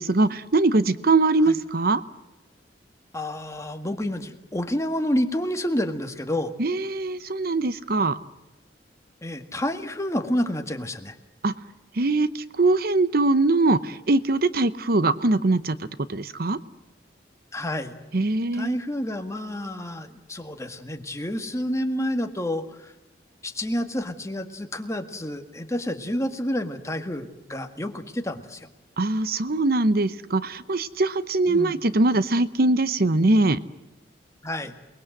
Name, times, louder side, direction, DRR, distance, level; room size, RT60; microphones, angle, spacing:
voice 1, 0.0-2.0 6.6-8.2 11.4-11.5 12.0-15.8 16.1-16.6 18.1-18.7 29.0-33.6, right 2 dB, 55° right, 14 dB, 0.8 m, -22 dB
voice 2, 3.1-6.5 9.2-11.2 17.5-17.9 18.5-22.9 23.4-28.7 31.5-31.8 34.4-34.7, left 1 dB, 15° left, 6 dB, 1.8 m, -29 dB
28.5 x 20.5 x 7.8 m, 0.99 s
head